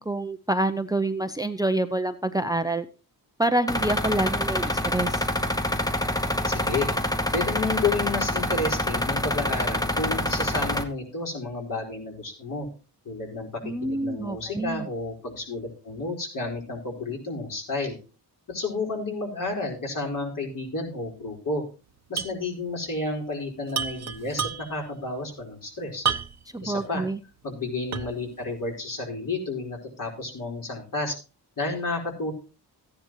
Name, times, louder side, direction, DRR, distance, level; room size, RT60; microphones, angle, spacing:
voice 1, 0.0-2.9 3.4-5.3 13.6-14.9 26.5-27.2, right 2 dB, 10° right, 11 dB, 0.6 m, -27 dB
sound 1, 3.7-10.8, left 1 dB, 10° left, 1.2 m, -26 dB
voice 2, 6.4-6.9 7.3-12.7 13.0-18.0 18.5-21.6 22.1-26.0 26.6-27.0 27.4-31.2 31.6-32.3, left 3 dB, 55° left, 0 dB, 4.7 m, -31 dB
sound 2, 22.2-22.4 22.7-22.8 23.7-24.9 26.0-26.6 27.1-27.2 27.9-28.3, right 7 dB, 40° right, 0.9 m, -29 dB
14.5 x 10.0 x 3.1 m, 0.34 s
cardioid pair, 90°, 40 cm